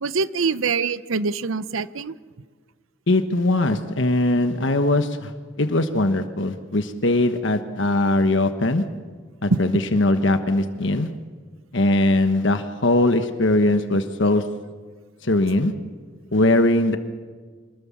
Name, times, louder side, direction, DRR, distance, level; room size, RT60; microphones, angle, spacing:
voice 1, 0.0-2.2 9.5-9.6, right 4 dB, 80° right, 16 dB, 0.7 m, -24 dB
voice 2, 3.1-5.3 5.6-8.8 9.4-11.1 11.7-14.4 15.2-15.7 16.3-17.0, left 2 dB, 65° left, 8 dB, 1.2 m, -20 dB
26.5 x 20.5 x 7.3 m, 1.5 s
head